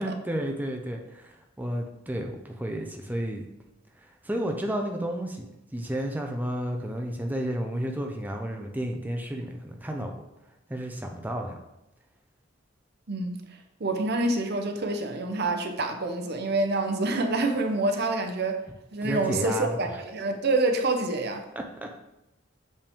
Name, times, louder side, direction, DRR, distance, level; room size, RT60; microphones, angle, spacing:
voice 1, 0.0-3.4 4.2-5.5 5.7-10.1 10.7-11.6 19.0-19.8 21.6-21.9, right 1 dB, 10° right, 2 dB, 0.6 m, -32 dB
voice 2, 13.1-13.4 13.8-18.6 18.9-21.4, right 2 dB, 55° right, 5 dB, 0.8 m, -27 dB
6.8 x 5.4 x 3.6 m, 0.91 s
head